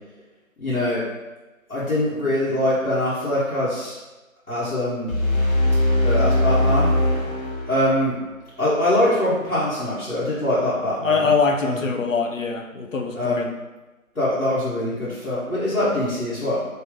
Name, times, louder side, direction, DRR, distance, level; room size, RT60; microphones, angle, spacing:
voice 1, 0.6-1.0 1.7-3.9 4.5-5.1 6.0-6.9 7.7-8.1 8.6-11.2 11.6-11.9 13.1-13.5 14.1-16.7, left 1 dB, 90° left, -12 dB, 1.4 m, -23 dB
sound 1, 5.1-8.1, left 1 dB, 40° left, 1.2 m, -20 dB
voice 2, 11.0-13.5, left 4 dB, 65° left, 4 dB, 0.6 m, -23 dB
3.3 x 2.6 x 3.7 m, 1.1 s
figure-of-eight pair, 160°, 42 cm